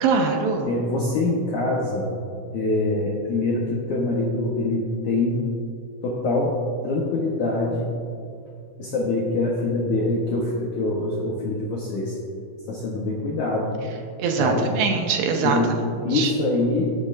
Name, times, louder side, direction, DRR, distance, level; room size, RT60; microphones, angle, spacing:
voice 1, 0.0-0.7 14.2-15.6 16.1-16.3, right 5 dB, 80° right, 3 dB, 3.0 m, -22 dB
voice 2, 0.6-2.1 2.5-5.5 6.0-6.6 6.8-7.9 8.8-12.2 12.7-13.8 14.4-14.7 15.4-16.9, left 2 dB, 80° left, -4 dB, 1.7 m, -24 dB
18.5 x 7.9 x 2.6 m, 2.5 s
omnidirectional pair, 5.1 m